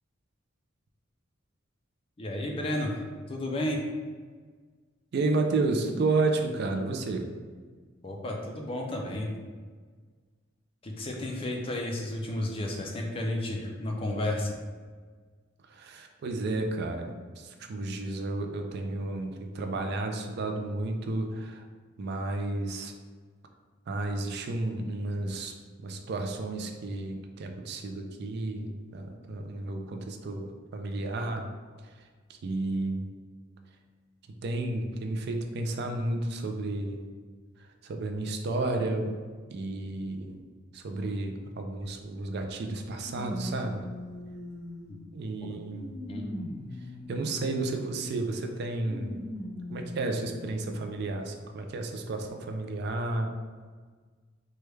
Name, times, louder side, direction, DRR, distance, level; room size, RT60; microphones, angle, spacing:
voice 1, 2.2-3.8 8.0-9.3 10.8-14.6 44.9-45.0 45.4-45.6 45.9-46.3, left 1 dB, 30° left, 1 dB, 0.4 m, -32 dB
voice 2, 5.1-7.3 15.7-21.7 22.0-22.9 23.9-25.5 25.8-31.5 31.8-33.1 34.4-37.1 37.6-39.1 39.5-40.4 40.7-43.8 45.1-45.9 47.1-49.3 49.7-53.3, right 2 dB, 55° right, 4 dB, 0.3 m, -32 dB
sound 1, 41.8-41.9 43.0-45.1 45.6-47.7 48.8-50.3 51.0-51.1 52.2-52.3, left 1 dB, 30° right, 1.0 m, -40 dB
3.2 x 2.3 x 3.1 m, 1.5 s
head